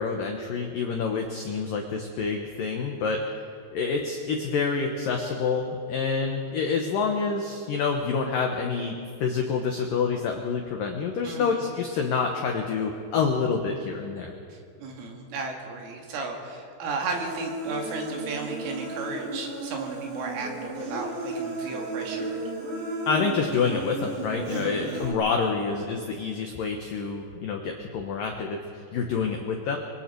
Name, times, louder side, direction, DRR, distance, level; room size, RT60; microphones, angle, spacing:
voice 1, 0.0-3.5 3.7-8.9 9.2-14.3 23.1-28.6 28.9-29.8, left 5 dB, 90° left, 3 dB, 1.9 m, -27 dB
voice 2, 11.2-11.6 14.5-22.4 24.5-24.9, right 4 dB, 80° right, 1 dB, 4.8 m, -35 dB
Human voice, 17.1-25.1, right 2 dB, 50° right, 4.0 m, -34 dB
24.5 x 23.5 x 4.6 m, 2.4 s
omnidirectional pair, 5.7 m